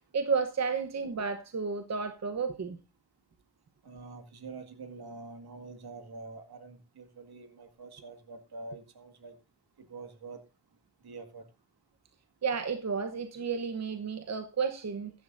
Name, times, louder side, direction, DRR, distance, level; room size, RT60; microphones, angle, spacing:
voice 1, 0.1-2.8 12.4-15.1, right 5 dB, 40° right, 1.0 m, -32 dB
voice 2, 3.8-9.3 9.8-10.4 11.0-11.4, right 3 dB, 60° right, 2.0 m, -46 dB
15.5 x 11.0 x 2.6 m
cardioid pair, 95°, 43 cm